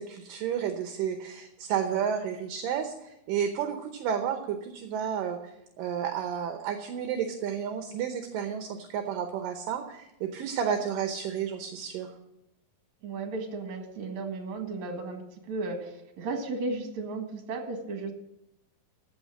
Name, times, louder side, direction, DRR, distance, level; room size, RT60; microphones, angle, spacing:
voice 1, 0.0-5.4 5.8-12.1, right 8 dB, 75° right, 6 dB, 2.4 m, -31 dB
voice 2, 13.0-18.1, right 3 dB, 60° right, 4 dB, 2.9 m, -35 dB
15.0 x 5.8 x 7.3 m, 0.84 s
omnidirectional pair, 4.2 m